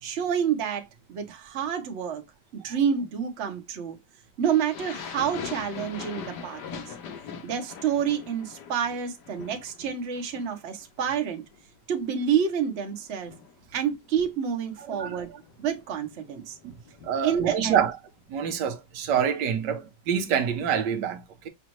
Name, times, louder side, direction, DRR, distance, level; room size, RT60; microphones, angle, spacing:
voice 1, 0.0-2.2 2.5-4.0 4.4-6.8 7.4-11.4 11.9-13.3 13.7-16.6 17.2-17.8, right 8 dB, 45° right, 1.0 m, -28 dB
sound 1, 4.4-10.9 11.1-11.6 12.0-17.6, left 7 dB, 75° left, 1.4 m, -42 dB
voice 2, 14.8-15.2 16.6-16.7 17.0-18.0 18.3-21.5, right 8 dB, 80° right, 1.3 m, -26 dB
6.1 x 2.5 x 2.9 m
omnidirectional pair, 1.9 m